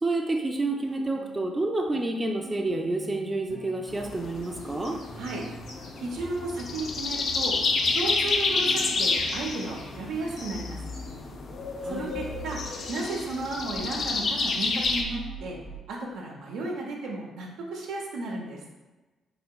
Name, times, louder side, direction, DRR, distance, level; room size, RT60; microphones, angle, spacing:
voice 1, 0.0-5.0 11.8-12.1, right 2 dB, 20° right, 2 dB, 0.3 m, -29 dB
sound 1, 0.8-11.7 12.1-13.5 13.8-15.8, right 1 dB, 40° right, 0.7 m, -44 dB
sound 2, 3.9-15.0, left 3 dB, 55° left, 0.4 m, -30 dB
sound 3, 4.4-6.1 6.9-7.0 7.5-9.9 10.2-10.4 10.9-11.2 12.0-12.6, left 2 dB, 80° left, 0.7 m, -52 dB
voice 2, 6.0-7.6 7.9-10.8 11.8-12.6 12.9-15.6 15.9-18.6, right 2 dB, 85° right, -1 dB, 0.7 m, -34 dB
4.0 x 2.8 x 2.2 m, 1.1 s
cardioid pair, 90°, 0 cm